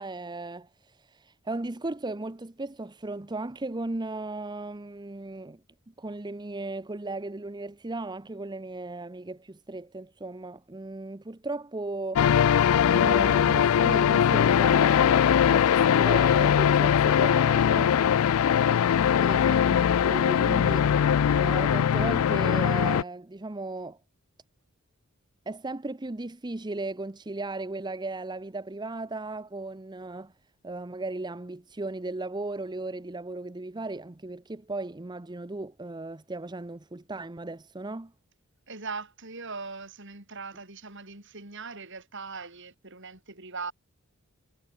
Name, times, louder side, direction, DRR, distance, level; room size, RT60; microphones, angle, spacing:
voice 1, 0.0-5.6 6.0-12.3 12.8-18.0 19.2-20.9 21.3-24.0 25.5-30.3 30.6-38.1, right 2 dB, 20° right, 0.7 m, -36 dB
sound 1, 12.2-23.0, left 8 dB, 75° left, 0.4 m, -21 dB
voice 2, 18.4-19.6 38.7-43.7, right 4 dB, 60° right, 7.7 m, -41 dB
head